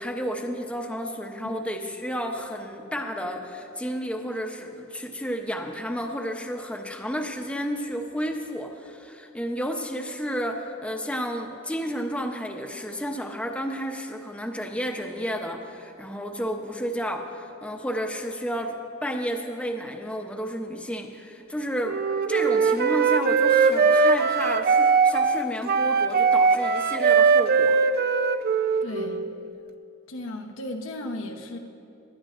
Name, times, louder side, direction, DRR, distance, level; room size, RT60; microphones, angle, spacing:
voice 1, 0.0-22.0 22.3-27.8, equal, 5° left, 3 dB, 0.8 m, -31 dB
Wind instrument woodwind instrument, 21.8-29.3, right 5 dB, 50° right, 0.5 m, -21 dB
voice 2, 28.8-29.2 30.1-31.6, left 1 dB, 85° left, 3 dB, 1.0 m, -35 dB
19.5 x 12.5 x 2.5 m, 2.6 s
head